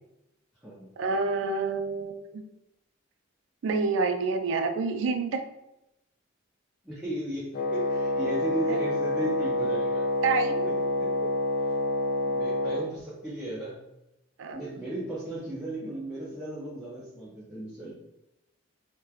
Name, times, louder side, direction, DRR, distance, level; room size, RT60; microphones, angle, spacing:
voice 1, 1.0-2.4 3.6-5.5 8.7-8.8 10.2-10.7 14.4-14.6, right 4 dB, 70° right, 7 dB, 0.3 m, -28 dB
voice 2, 6.8-10.0 10.7-11.3 12.2-13.8 14.5-17.9, right 1 dB, 5° right, -9 dB, 0.5 m, -36 dB
Wind instrument woodwind instrument, 7.5-12.9, left 1 dB, 55° left, 0.3 m, -27 dB
3.0 x 2.1 x 2.3 m, 0.89 s
head